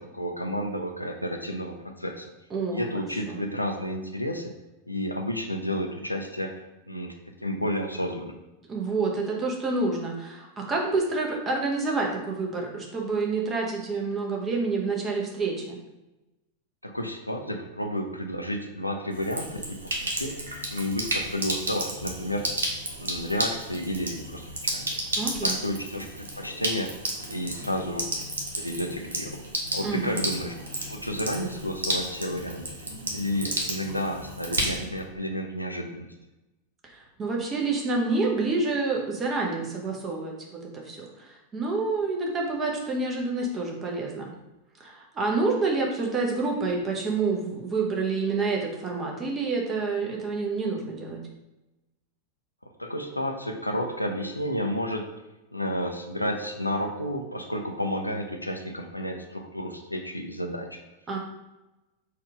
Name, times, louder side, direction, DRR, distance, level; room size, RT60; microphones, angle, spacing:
voice 1, 0.0-2.3 2.7-4.5 4.9-6.6 6.9-7.1 7.4-8.3 16.8-20.3 20.7-22.5 23.0-25.0 25.4-28.1 28.6-29.4 29.7-30.6 30.9-32.7 33.1-36.1 52.8-55.1 55.5-60.8, equal, 85° left, 3 dB, 0.5 m, -31 dB
voice 2, 2.5-2.9 3.3-3.4 8.7-15.8 25.2-25.6 29.8-30.2 36.8-44.3 44.8-51.2 61.1-61.2, right 3 dB, 20° right, -1 dB, 1.0 m, -28 dB
Sink (filling or washing), 19.1-35.1, right 1 dB, 70° right, 0.8 m, -32 dB
4.1 x 2.5 x 4.8 m, 1.0 s
figure-of-eight pair, 90°, 0 cm